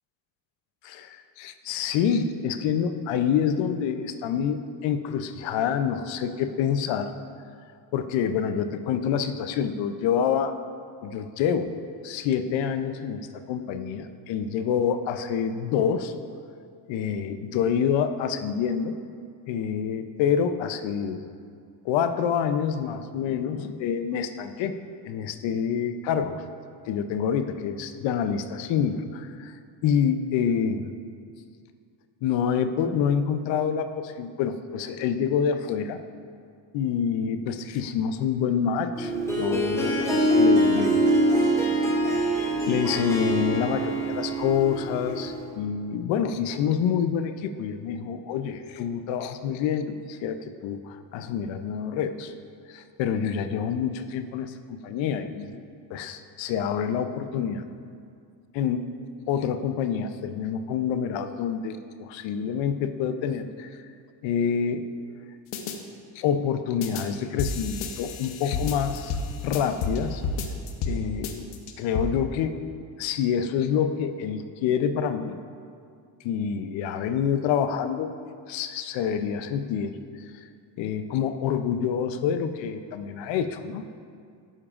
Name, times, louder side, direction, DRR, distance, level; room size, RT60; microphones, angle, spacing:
voice 1, 0.8-7.1 7.9-10.5 11.0-11.7 12.0-16.1 16.9-18.9 19.5-21.2 21.8-24.7 25.1-26.4 26.9-29.5 29.8-30.9 32.2-36.0 36.7-41.1 42.7-52.3 52.7-55.6 55.9-57.6 58.5-58.9 59.3-63.7 64.2-64.9 66.2-69.2 69.4-70.2 70.8-71.5 71.8-72.6 73.0-75.4 76.2-78.1 78.5-79.9 80.3-80.4 80.8-83.8, left 7 dB, 70° left, 9 dB, 0.6 m, -27 dB
Harp, 39.0-45.5, right 1 dB, 5° left, 0.7 m, -24 dB
sound 1, 65.5-65.8 66.8-67.0 67.4-70.0 70.2-71.0 71.2-72.0, left 4 dB, 90° left, 1.0 m, -30 dB
12.0 x 9.9 x 2.5 m, 2.3 s
cardioid pair, 175°, 47 cm